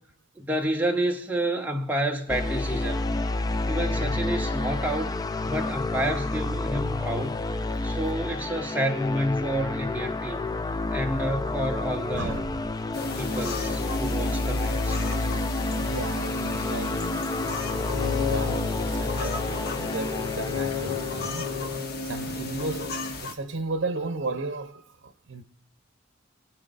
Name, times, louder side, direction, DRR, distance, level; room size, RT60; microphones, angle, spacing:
voice 1, 0.4-3.2 3.7-5.2 5.4-7.4 7.8-10.5 10.9-12.4 13.2-15.0, right 1 dB, 10° right, 1.0 m, -29 dB
sound 1, 2.3-21.8, left 2 dB, 20° left, 0.4 m, -29 dB
voice 2, 12.1-12.6 15.8-17.0 18.0-21.5 22.0-25.4, right 3 dB, 70° right, 0.9 m, -34 dB
sound 2, 12.9-23.3, left 4 dB, 55° left, 1.2 m, -32 dB
26.5 x 9.0 x 2.6 m
head